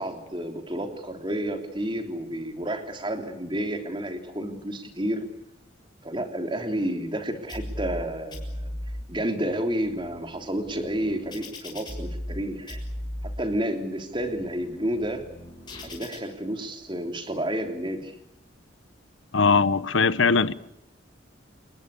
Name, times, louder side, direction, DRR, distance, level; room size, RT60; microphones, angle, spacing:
voice 1, 0.0-5.2 6.0-8.7 9.1-12.8 13.4-15.3 15.8-18.2, right 1 dB, 25° right, 3.3 m, -30 dB
sound 1, 7.5-8.0 8.3-9.0 9.6-12.4 12.7-13.4 14.0-16.2, left 1 dB, 20° left, 6.9 m, -37 dB
voice 2, 19.3-20.5, left 4 dB, 80° left, 1.0 m, -20 dB
29.0 x 21.0 x 8.4 m
head